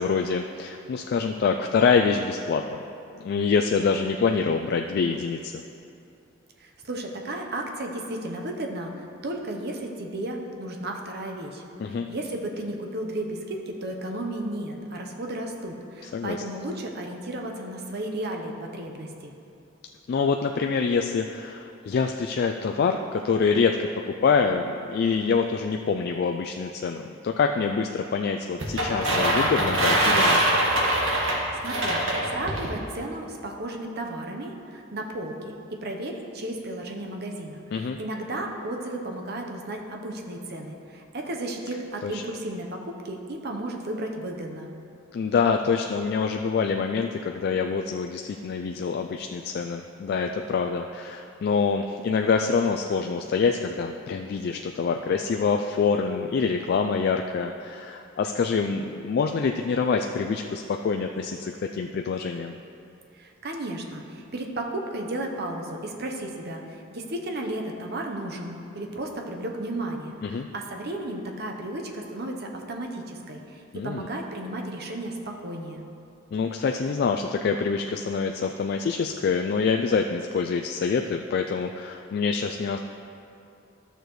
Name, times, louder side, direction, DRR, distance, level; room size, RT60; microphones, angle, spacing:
voice 1, 0.0-2.8 3.1-5.6 11.8-12.1 16.0-16.4 20.1-30.4 37.7-38.0 42.0-42.2 45.1-62.6 70.2-70.5 73.7-74.1 76.3-82.8, left 5 dB, 50° left, 4 dB, 0.3 m, -26 dB
voice 2, 6.6-19.3 31.3-35.5 35.8-44.7 63.1-75.8, right 1 dB, 55° right, 2 dB, 0.8 m, -34 dB
sound 1, 28.6-32.7, right 1 dB, 80° right, 1.5 m, -23 dB
13.0 x 6.7 x 3.1 m, 2.6 s
head